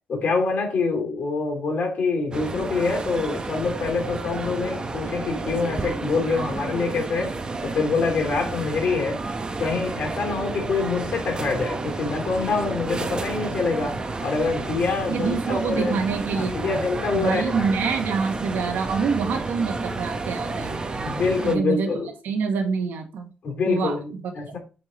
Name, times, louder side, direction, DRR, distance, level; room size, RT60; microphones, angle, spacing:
voice 1, 0.1-7.4 7.6-9.2 9.6-16.0 16.3-17.7 21.0-22.1 23.4-24.6, left 4 dB, 50° left, 3.1 m, -25 dB
sound 1, 2.3-21.6, right 3 dB, 25° right, 0.9 m, -31 dB
voice 2, 15.1-16.8 17.1-20.9 21.4-21.9 22.2-23.3 23.7-24.2, right 5 dB, 80° right, 1.4 m, -26 dB
8.0 x 3.8 x 4.1 m
cardioid pair, 125°, 3 cm